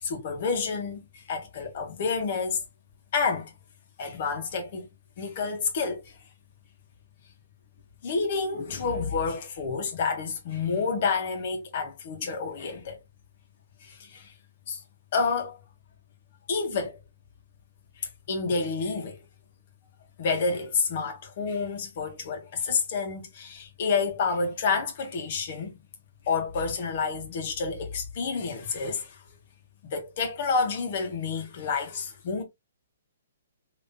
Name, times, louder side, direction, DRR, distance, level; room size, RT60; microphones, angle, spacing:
voice 1, 0.0-2.6 3.1-3.5 4.0-4.9 5.2-6.2 8.0-13.0 13.8-14.3 14.7-14.8 15.1-15.6 16.5-17.0 18.0-19.2 20.2-25.8 26.3-29.2 29.9-32.4, left 4 dB, 50° left, 1.5 m, -29 dB
3.7 x 3.2 x 2.7 m
hypercardioid pair, 150°, 0 cm